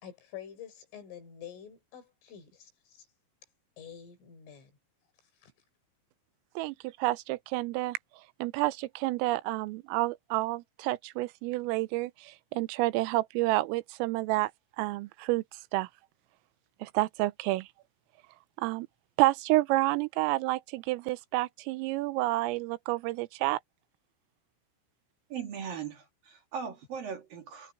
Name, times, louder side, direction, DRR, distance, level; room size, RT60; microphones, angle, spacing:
voice 1, 0.0-3.1 3.8-4.7 5.4-5.5, left 9 dB, 70° left, 7.4 m, -47 dB
voice 2, 6.6-8.0 8.4-14.5 14.8-15.4 15.7-15.9 16.8-17.7 18.6-18.9 19.2-23.6, right 19 dB, 90° right, 3.3 m, -29 dB
voice 3, 25.3-27.7, right 7 dB, 50° right, 3.7 m, -39 dB
omnidirectional pair, 5.9 m